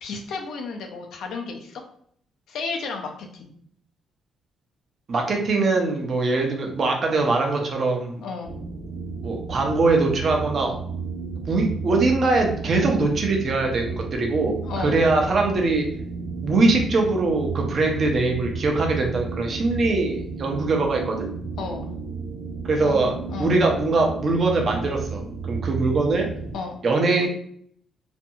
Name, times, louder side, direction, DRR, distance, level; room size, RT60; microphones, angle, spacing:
voice 1, 0.0-1.8 2.5-3.5 8.2-8.6 14.6-15.1 21.6-21.9 22.8-23.6 26.5-26.8, left 4 dB, 75° left, 3 dB, 0.5 m, -33 dB
voice 2, 5.1-8.2 9.2-10.7 11.5-15.9 16.4-21.3 22.7-23.1 23.4-25.2 25.5-26.3 26.8-27.3, right 3 dB, 50° right, 1 dB, 0.6 m, -22 dB
sound 1, 8.4-26.5, right 4 dB, 90° right, 0.9 m, -33 dB
2.5 x 2.2 x 2.7 m, 0.64 s
cardioid pair, 90°, 0 cm